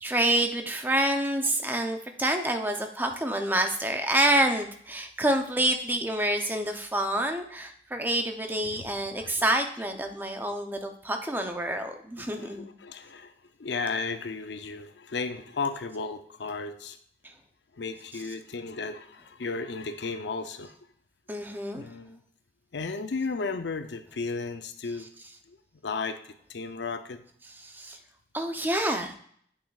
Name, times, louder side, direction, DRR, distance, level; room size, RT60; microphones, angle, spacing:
voice 1, 0.0-12.6 21.3-21.9 25.0-25.1 27.4-28.0 28.3-29.1, right 1 dB, 10° right, 5 dB, 0.6 m, -27 dB
voice 2, 8.6-9.3 12.4-13.3 13.6-17.0 17.8-20.7 21.7-22.2 22.7-25.1 25.5-25.6 25.8-27.2, left 4 dB, 85° left, 9 dB, 0.6 m, -34 dB
8.4 x 6.2 x 2.4 m, 0.62 s
head